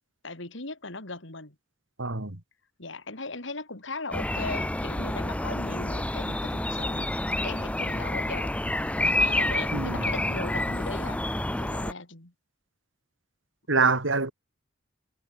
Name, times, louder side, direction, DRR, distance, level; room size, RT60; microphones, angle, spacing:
voice 1, 0.2-1.5 2.8-7.1 7.4-8.5 9.0-11.2 11.6-12.3, left 3 dB, 65° left, 3.2 m, -38 dB
voice 2, 2.0-2.4 9.7-10.0 13.7-14.3, right 4 dB, 70° right, 2.6 m, -25 dB
sound 1, 4.1-11.9, left 1 dB, 5° left, 0.6 m, -28 dB
head